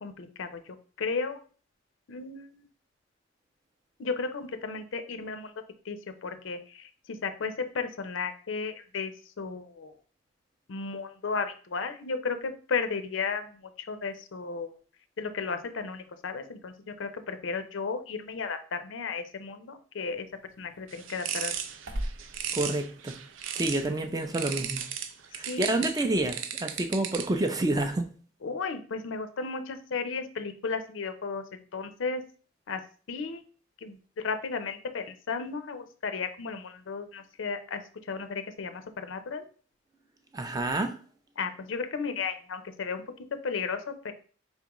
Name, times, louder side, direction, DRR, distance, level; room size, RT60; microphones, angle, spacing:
voice 1, 0.0-1.4 2.1-2.7 4.0-5.5 5.9-9.9 10.7-14.8 15.2-20.3 20.6-21.6 25.3-25.7 28.4-31.4 31.7-32.2 32.7-32.8 33.1-33.4 33.8-37.8 38.1-39.5 41.4-43.0 43.3-44.1, left 5 dB, 75° left, 0.5 m, -34 dB
sound 1, 20.0-26.3, right 1 dB, 65° right, 0.8 m, -44 dB
sound 2, 20.9-23.9 24.3-27.5, right 9 dB, 80° right, 0.4 m, -36 dB
voice 2, 22.5-23.2 23.5-24.8 25.3-28.1 40.3-40.9, right 2 dB, 20° right, 0.4 m, -28 dB
4.3 x 3.5 x 2.9 m
head